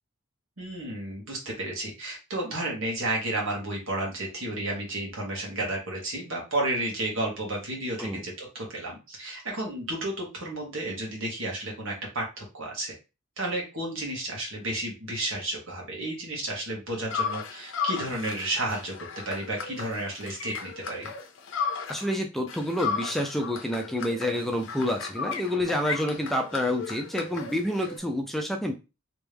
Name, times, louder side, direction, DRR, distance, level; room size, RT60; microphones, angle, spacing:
voice 1, 0.6-12.9 13.4-18.9 19.2-21.1, right 1 dB, 70° right, -1 dB, 1.7 m, -32 dB
sound 1, 17.1-22.2 22.5-28.0, left 6 dB, 60° left, 0.6 m, -35 dB
voice 2, 21.9-28.7, left 1 dB, ahead, 3 dB, 0.4 m, -28 dB
3.4 x 3.0 x 3.4 m, 0.28 s
head